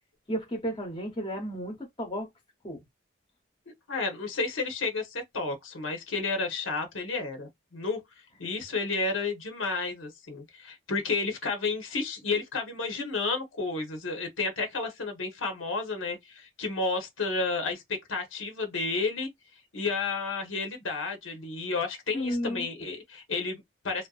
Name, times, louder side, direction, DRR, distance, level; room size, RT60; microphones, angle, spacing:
voice 1, 0.3-2.3 2.6-2.8 22.1-22.7, equal, 25° left, 0.7 m, -32 dB
voice 2, 3.9-8.0 8.4-19.3 19.7-24.1, left 3 dB, 90° left, 0.9 m, -31 dB
2.5 x 2.1 x 2.3 m
head